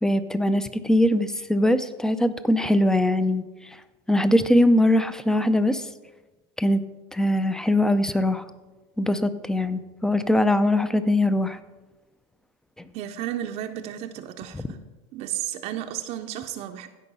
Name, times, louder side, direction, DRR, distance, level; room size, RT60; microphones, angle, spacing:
voice 1, 0.0-3.4 4.1-5.8 6.6-6.8 7.1-8.4 9.0-11.6, left 1 dB, 5° left, 13 dB, 0.5 m, -21 dB
voice 2, 12.9-14.8 15.1-16.9, right 11 dB, 55° right, 5 dB, 0.7 m, -33 dB
15.5 x 5.2 x 5.4 m, 1.2 s
supercardioid pair, 120°, 14 cm